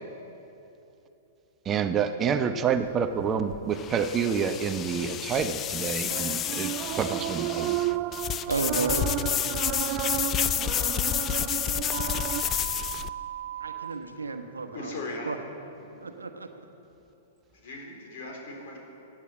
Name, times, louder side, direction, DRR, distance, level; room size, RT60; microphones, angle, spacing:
voice 1, 1.6-7.8, right 7 dB, 25° right, 8 dB, 0.8 m, -28 dB
sound 1, 2.7-13.1, left 10 dB, 30° left, 0.5 m, -30 dB
sound 2, 6.1-12.4, right 16 dB, 40° right, 0.4 m, -32 dB
voice 2, 8.5-9.1 13.6-14.9 15.2-15.4 16.0-16.5, right 4 dB, 85° right, 6 dB, 1.2 m, -32 dB
sound 3, 11.9-13.9, right 11 dB, 65° right, 0.9 m, -37 dB
voice 3, 14.7-15.4 16.0-16.1 17.5-18.8, left 2 dB, 60° left, 0 dB, 4.1 m, -38 dB
16.5 x 9.0 x 7.6 m, 3.0 s
figure-of-eight pair, 105°, 0 cm